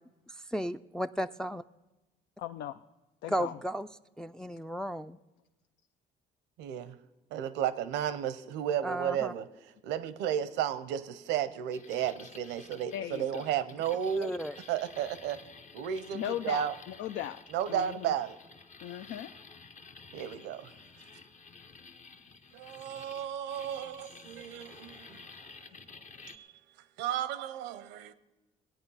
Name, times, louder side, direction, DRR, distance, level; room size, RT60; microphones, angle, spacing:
voice 1, 0.5-1.6 3.3-3.9 4.2-5.2 8.8-9.3 14.2-14.5, equal, 5° left, 0.3 m, -34 dB
voice 2, 2.4-2.8 3.2-3.6 12.9-13.4 16.1-17.4 17.7-18.1 18.8-19.3, left 11 dB, 75° left, 0.4 m, -37 dB
voice 3, 6.6-7.0 7.3-15.4 15.7-16.7 17.5-18.4 20.1-21.1 22.5-25.8 26.1-28.1, right 10 dB, 90° right, 0.7 m, -34 dB
sound 1, 11.7-26.4, left 4 dB, 40° left, 0.9 m, -52 dB
18.0 x 8.8 x 5.6 m
supercardioid pair, 75°, 18 cm